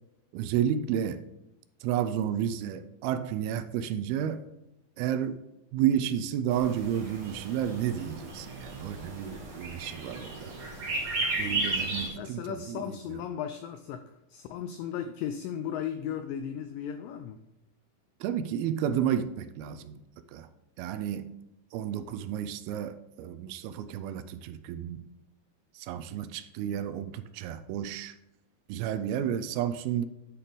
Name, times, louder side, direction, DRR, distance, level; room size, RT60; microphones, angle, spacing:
voice 1, 0.3-1.2 1.8-4.4 5.0-5.4 5.7-10.5 11.4-13.2 18.2-20.0 20.3-20.5 20.8-21.3 21.7-25.0 25.8-28.1 28.7-30.1, right 9 dB, 85° right, 2.4 m, -31 dB
sound 1, 6.5-12.1, right 2 dB, 50° right, 1.6 m, -34 dB
voice 2, 12.0-14.0 14.3-17.4, left 9 dB, 85° left, 1.9 m, -36 dB
10.0 x 4.2 x 5.1 m
omnidirectional pair, 4.5 m